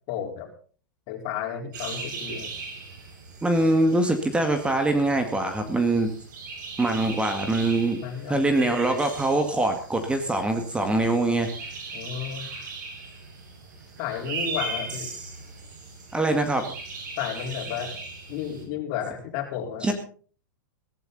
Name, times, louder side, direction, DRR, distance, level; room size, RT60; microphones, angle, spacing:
voice 1, 0.1-0.5 1.1-2.5 8.0-8.7 11.9-12.5 14.0-15.1 17.2-17.9 18.3-19.9, left 9 dB, 45° left, 3 dB, 4.6 m, -32 dB
sound 1, 1.7-18.6, right 3 dB, 65° right, 6.8 m, -39 dB
voice 2, 3.4-6.1 6.8-8.0 8.3-11.5 16.1-16.7 19.8-19.9, right 2 dB, 10° right, 6 dB, 2.1 m, -23 dB
16.5 x 15.0 x 4.2 m, 0.42 s
hypercardioid pair, 110°, 11 cm